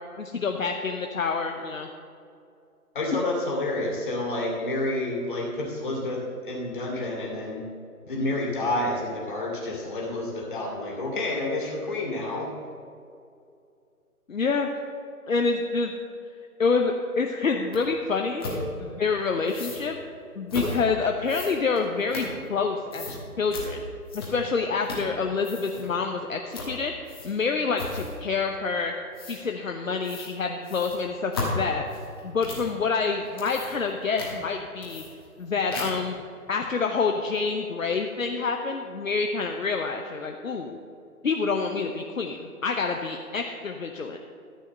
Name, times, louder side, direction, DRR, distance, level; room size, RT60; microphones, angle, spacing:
voice 1, 0.2-1.9 3.1-3.2 14.3-14.7 15.3-15.9 16.6-18.4 18.8-20.0 20.4-23.8 24.1-26.9 27.2-28.9 29.3-31.8 32.2-35.0 35.4-36.1 36.5-40.8 41.2-44.2, left 4 dB, 60° left, 4 dB, 0.9 m, -27 dB
voice 2, 2.9-7.7 8.0-12.5, left 2 dB, 35° left, -2 dB, 2.4 m, -29 dB
sound 1, 17.7-17.8 18.4-18.6 19.4-19.8 20.5-20.8 21.2-22.6 22.9-23.2 23.5-23.7 24.1-24.5 24.8-25.1 25.4-25.8 26.5-26.7 27.1-27.4 27.8-28.2 29.1-29.4 30.0-30.3 30.6-32.7 33.2-33.9 34.2-34.3 34.8-35.4 35.7-36.1, left 2 dB, 15° left, 1.3 m, -35 dB
13.0 x 5.6 x 6.7 m, 2.5 s
figure-of-eight pair, 155°, 45 cm